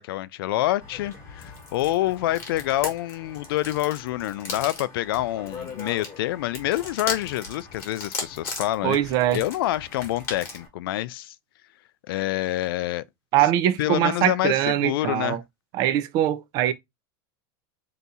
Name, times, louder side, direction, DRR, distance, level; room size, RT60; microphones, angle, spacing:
voice 1, 0.0-11.3 12.1-13.0 13.8-15.4, left 15 dB, 75° left, 0.4 m, -27 dB
sound 1, 0.8-10.7, left 4 dB, 20° left, 1.2 m, -38 dB
voice 2, 8.8-9.4 13.3-15.4 15.7-16.7, right 12 dB, 30° right, 0.4 m, -22 dB
4.0 x 2.8 x 3.5 m
supercardioid pair, 175°, 12 cm